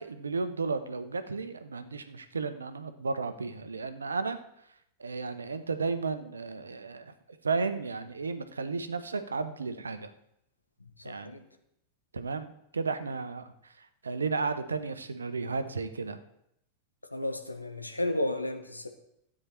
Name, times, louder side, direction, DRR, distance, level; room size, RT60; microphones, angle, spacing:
voice 1, 0.0-4.4 5.0-7.1 7.4-10.1 11.0-11.4 12.1-13.5 14.0-16.2, right 4 dB, 75° right, 11 dB, 0.9 m, -33 dB
voice 2, 11.0-11.4 17.1-18.9, left 1 dB, 85° left, 6 dB, 1.3 m, -33 dB
13.0 x 8.6 x 4.4 m, 0.77 s
figure-of-eight pair, 90°, 0 cm